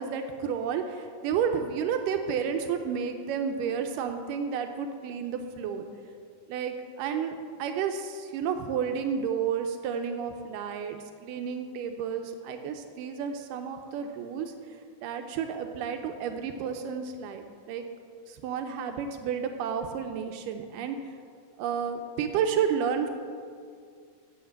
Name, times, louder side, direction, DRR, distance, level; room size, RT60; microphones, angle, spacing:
voice 1, 0.0-5.9 6.5-14.5 15.0-17.9 18.3-21.2 21.6-23.1, right 7 dB, 85° right, 6 dB, 2.3 m, -31 dB
8.0 x 7.9 x 7.5 m, 2.2 s
omnidirectional pair, 3.8 m